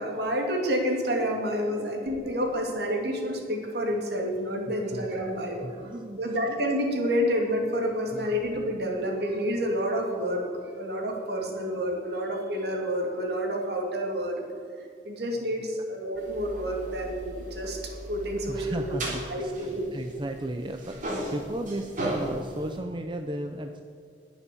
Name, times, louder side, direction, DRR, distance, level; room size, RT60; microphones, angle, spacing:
voice 1, 0.0-14.4 15.0-18.9 19.3-19.8, equal, 65° right, 1 dB, 2.8 m, -29 dB
voice 2, 5.6-6.2 8.1-8.3 18.5-19.5 19.9-23.8, right 1 dB, 25° right, 6 dB, 0.6 m, -35 dB
sound 1, 16.2-20.4 20.7-22.8, right 1 dB, 45° right, 3.6 m, -36 dB
20.5 x 7.3 x 7.0 m, 2.4 s
head